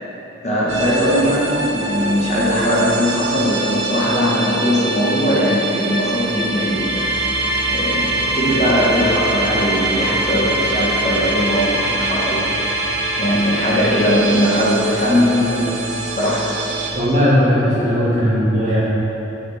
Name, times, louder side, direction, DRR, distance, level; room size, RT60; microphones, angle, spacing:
voice 1, 0.4-7.1 7.7-12.4 12.8-15.7 16.2-16.5, equal, 35° left, -6 dB, 1.3 m, -19 dB
sound 1, 0.7-16.9, right 2 dB, 80° right, 1.4 m, -23 dB
voice 2, 16.9-18.8, equal, 35° right, -8 dB, 1.8 m, -17 dB
7.7 x 7.1 x 4.1 m, 2.9 s
head